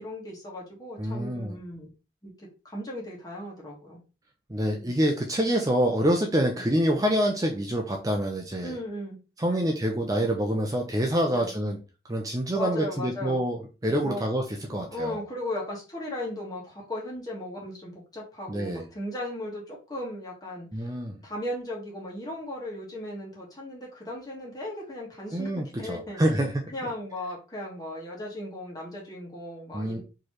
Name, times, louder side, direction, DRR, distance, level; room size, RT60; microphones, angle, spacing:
voice 1, 0.0-1.9 2.2-4.0 8.6-9.7 11.3-11.5 12.5-13.4 14.0-14.2 14.6-20.9 21.2-25.5 25.8-26.2 26.7-30.0, left 1 dB, 20° left, -3 dB, 1.4 m, -37 dB
voice 2, 1.0-1.5 4.5-8.8 9.4-11.8 12.1-15.2 18.5-18.8 20.7-21.1 25.3-26.7 29.7-30.0, equal, 20° right, 1 dB, 0.5 m, -26 dB
4.6 x 3.1 x 3.0 m, 0.32 s
head